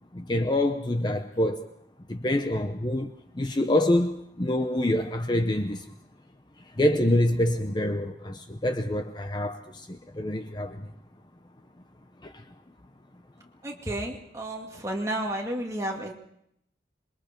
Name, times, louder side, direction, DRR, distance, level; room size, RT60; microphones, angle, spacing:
voice 1, 0.1-1.7 2.1-5.9 6.7-10.9 12.2-12.4, left 1 dB, 25° left, 0.8 m, -26 dB
voice 2, 13.6-16.1, right 1 dB, 15° right, 2.4 m, -32 dB
26.5 x 22.0 x 4.5 m
head